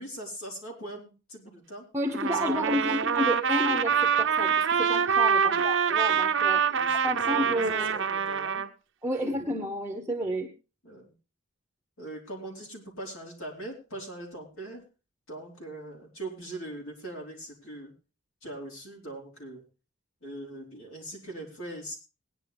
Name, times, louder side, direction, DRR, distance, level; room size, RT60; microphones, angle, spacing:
voice 1, 0.0-1.9 2.2-3.0 3.6-4.0 5.4-5.7 6.7-8.7 9.2-9.5 10.8-11.1 12.0-14.8 15.3-17.9 18.4-19.6 20.2-22.0, right 1 dB, 65° left, 0 dB, 4.3 m, -41 dB
voice 2, 1.9-8.0 9.0-10.5, equal, 10° right, 3 dB, 0.9 m, -31 dB
Trumpet, 2.1-8.7, right 7 dB, 55° right, 0.7 m, -25 dB
18.5 x 10.5 x 3.5 m, 0.32 s
head